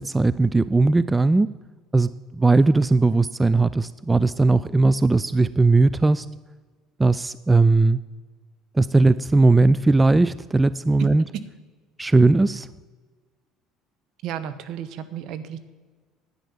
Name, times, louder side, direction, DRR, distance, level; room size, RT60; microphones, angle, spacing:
voice 1, 0.0-1.5 1.9-6.3 7.0-8.0 8.7-11.2 12.0-12.7, right 3 dB, 15° right, 17 dB, 0.3 m, -18 dB
voice 2, 14.2-15.6, right 9 dB, 65° right, 12 dB, 1.1 m, -33 dB
10.5 x 9.6 x 7.2 m, 1.4 s
supercardioid pair, 90°, 0 cm